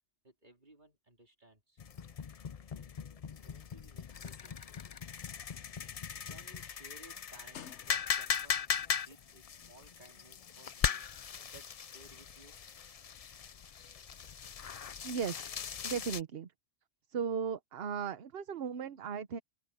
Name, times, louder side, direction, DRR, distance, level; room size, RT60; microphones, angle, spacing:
voice 1, 0.2-1.8 2.7-2.9 3.4-4.7 6.3-11.1 11.5-12.6, right 2 dB, 40° right, 4.1 m, -60 dB
sound 1, 1.8-16.2, left 7 dB, 45° left, 0.5 m, -39 dB
sound 2, 7.3-8.5 9.3-9.5, left 8 dB, 75° left, 1.1 m, -55 dB
voice 2, 15.0-15.5 15.8-16.5 17.1-19.4, right 6 dB, 60° right, 1.0 m, -36 dB
open air
omnidirectional pair, 1.2 m